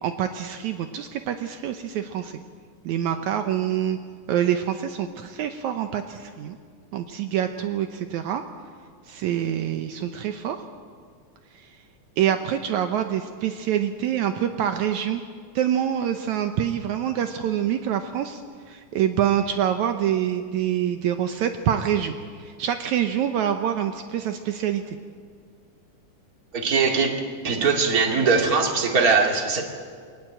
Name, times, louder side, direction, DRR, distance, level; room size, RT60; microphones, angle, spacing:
voice 1, 0.0-2.4 2.9-4.0 4.3-6.6 6.9-8.4 9.1-10.6 11.6-11.7 12.2-15.2 15.6-18.4 18.7-25.0, right 10 dB, 75° right, 7 dB, 2.2 m, -26 dB
voice 2, 26.5-27.1 27.4-29.6, right 4 dB, 30° right, 3 dB, 2.4 m, -21 dB
24.0 x 19.0 x 7.7 m, 2.1 s
omnidirectional pair, 3.6 m